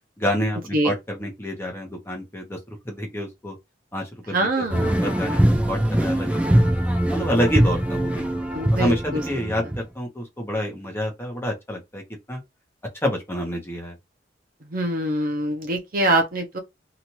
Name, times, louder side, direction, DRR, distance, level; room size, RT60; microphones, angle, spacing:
voice 1, 0.2-3.6 3.9-6.7 7.1-8.4 8.7-12.0 12.3-12.4 13.0-14.0, equal, 15° left, 0.8 m, -28 dB
voice 2, 4.3-5.0 8.5-9.2 14.6-16.6, right 1 dB, 50° right, 0.7 m, -24 dB
sound 1, 4.7-9.8, right 1 dB, 5° right, 0.4 m, -22 dB
2.9 x 2.5 x 2.9 m
head